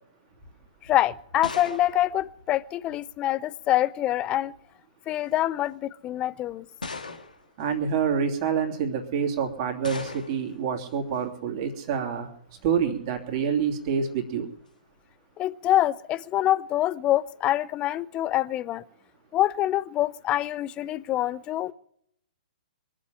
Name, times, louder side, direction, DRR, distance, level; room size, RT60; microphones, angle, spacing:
sound 1, 0.8-3.2 4.2-4.7 5.5-5.6 6.8-7.6 9.8-10.6, left 3 dB, 80° left, 1.7 m, -39 dB
voice 1, 0.8-4.5 5.1-6.7 15.4-18.8 19.3-21.7, left 13 dB, 25° left, 0.5 m, -25 dB
voice 2, 7.6-12.3 12.6-14.5, right 7 dB, 40° right, 3.0 m, -27 dB
23.0 x 7.7 x 7.7 m
figure-of-eight pair, 120°, 4 cm